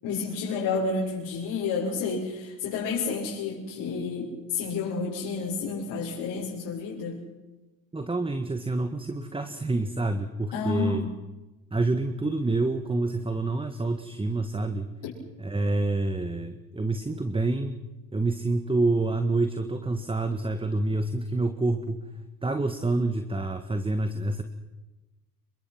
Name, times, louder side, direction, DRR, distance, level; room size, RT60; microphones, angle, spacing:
voice 1, 0.0-7.2 10.5-11.0, left 4 dB, 55° left, -5 dB, 7.1 m, -30 dB
voice 2, 7.9-11.1 11.7-14.9 15.4-17.8 18.1-22.1 22.4-24.4, right 2 dB, 10° right, 9 dB, 1.7 m, -27 dB
28.5 x 23.5 x 6.1 m, 1.1 s
hypercardioid pair, 70°, 49 cm